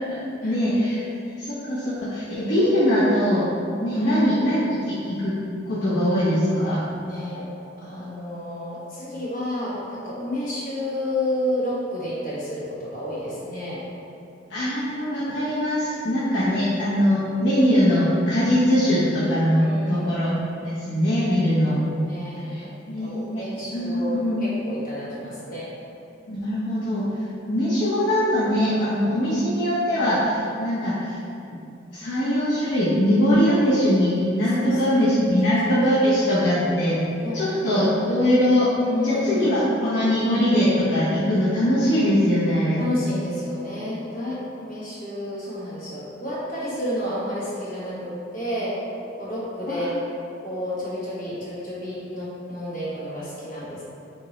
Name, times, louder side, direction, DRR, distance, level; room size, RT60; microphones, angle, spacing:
voice 1, 0.4-1.0 1.4-3.5 3.8-5.3 5.7-6.8 14.5-20.3 20.6-21.8 22.5-23.4 23.7-24.5 26.3-27.0 27.5-31.2 31.9-37.0 37.3-38.7 39.0-42.8 49.7-49.8, equal, 65° left, -11 dB, 0.8 m, -21 dB
voice 2, 7.0-7.5 7.8-13.8 16.4-16.5 19.6-20.2 22.0-22.7 23.0-25.7 34.7-34.8 37.2-37.6 38.0-38.2 38.8-39.5 42.8-48.7 49.1-50.0 50.4-53.8, left 1 dB, 50° left, -9 dB, 1.3 m, -30 dB
3.6 x 3.0 x 4.0 m, 2.6 s
head